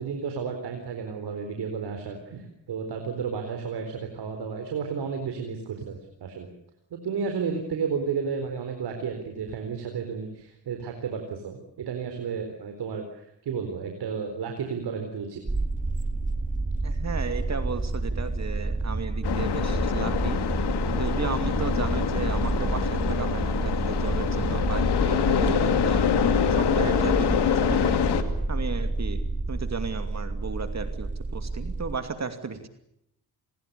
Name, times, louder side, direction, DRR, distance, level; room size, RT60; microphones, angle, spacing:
voice 1, 0.0-6.5 6.9-15.4, right 6 dB, 70° right, 4 dB, 4.2 m, -32 dB
sound 1, 15.5-32.0, right 3 dB, 20° right, 2.2 m, -29 dB
voice 2, 16.8-20.5 20.9-26.0 26.5-28.0 28.5-29.2 29.5-32.7, right 5 dB, 40° right, 8 dB, 2.6 m, -34 dB
sound 2, 19.2-28.2, left 8 dB, 75° left, 2.7 m, -25 dB
28.0 x 21.0 x 6.9 m, 0.78 s
cardioid pair, 80°, 40 cm